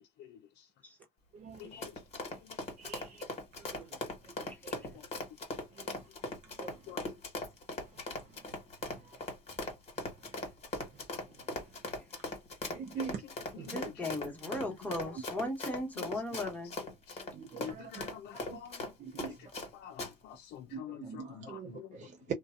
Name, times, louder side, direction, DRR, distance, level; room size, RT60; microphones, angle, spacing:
Run, 1.5-19.7 20.0-20.1, left 2 dB, 40° left, 1.4 m, -39 dB
voice 1, 1.6-1.9 6.9-7.0 13.0-13.1 13.5-13.7 17.1-17.2 17.6-18.7 19.8-21.8, left 10 dB, 80° left, 0.5 m, -47 dB
voice 2, 2.8-3.2 3.7-3.8 4.6-4.8 6.6-6.7 12.7-13.2 13.6-13.7 17.4-17.9 19.0-19.3 20.7-22.3, right 7 dB, 45° right, 0.5 m, -42 dB
voice 3, 13.7-16.7 17.2-17.3, left 1 dB, 10° left, 1.2 m, -37 dB
2.5 x 2.2 x 2.5 m
cardioid pair, 110°, 17 cm